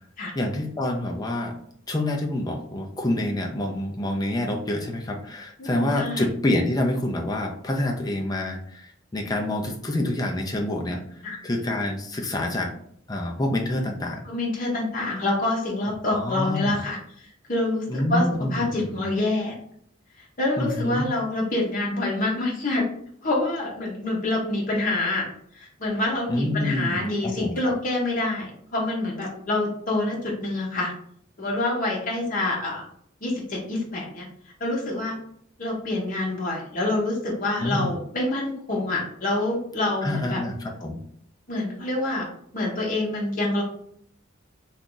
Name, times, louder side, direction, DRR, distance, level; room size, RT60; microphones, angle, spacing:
voice 1, 0.4-1.6 1.9-11.0 11.4-12.7 13.1-14.2 16.1-16.8 17.9-19.0 20.6-21.1 26.3-27.7 37.6-37.9 40.0-41.0, left 1 dB, 20° left, 1 dB, 0.4 m, -27 dB
voice 2, 5.6-6.3 11.2-11.4 14.2-17.0 17.5-19.6 20.4-22.8 23.2-25.3 25.5-30.9 31.4-32.8 33.2-34.3 34.6-35.2 35.6-40.4 41.5-42.3 42.5-43.6, left 2 dB, 40° left, -3 dB, 0.9 m, -26 dB
2.7 x 2.4 x 3.7 m, 0.66 s
head